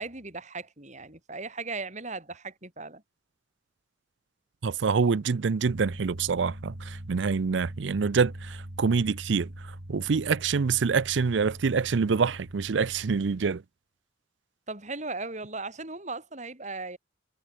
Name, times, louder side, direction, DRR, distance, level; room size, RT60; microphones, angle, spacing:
voice 1, 0.0-3.0 14.7-17.0, right 3 dB, 40° right, 6.2 m, -37 dB
voice 2, 4.6-13.6, right 5 dB, 85° right, 0.5 m, -26 dB
sound 1, 5.6-13.5, right 1 dB, 60° right, 3.0 m, -42 dB
head